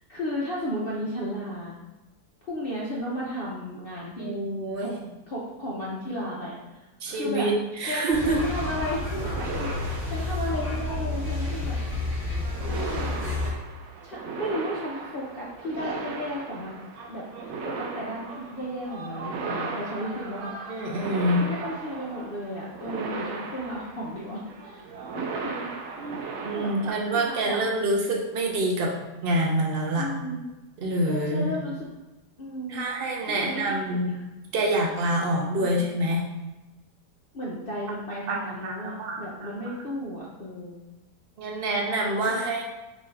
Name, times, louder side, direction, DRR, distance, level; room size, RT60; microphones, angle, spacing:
voice 1, 0.1-1.8 2.4-4.3 4.8-4.9 5.3-6.8 7.1-7.5 7.9-11.8 12.6-13.2 14.0-16.7 17.1-20.5 21.4-25.7 26.0-26.1 26.5-26.7 27.1-27.6 30.0-30.4 31.1-31.8 32.4-32.8 33.3-34.2 35.5-35.8 37.3-40.8 42.3-42.4, equal, 80° left, -5 dB, 0.5 m, -34 dB
voice 2, 4.2-5.0 7.0-8.4 20.7-21.4 26.0-28.9 29.2-30.1 30.8-31.5 32.7-34.1 34.5-36.2 38.3-39.5 41.4-42.6, right 1 dB, 65° right, 0 dB, 0.5 m, -26 dB
sound 1, 8.1-13.5, left 2 dB, 10° left, 1.0 m, -30 dB
sound 2, 8.6-26.9, right 4 dB, 90° right, 1.3 m, -37 dB
5.1 x 2.7 x 3.2 m, 1.1 s
omnidirectional pair, 1.9 m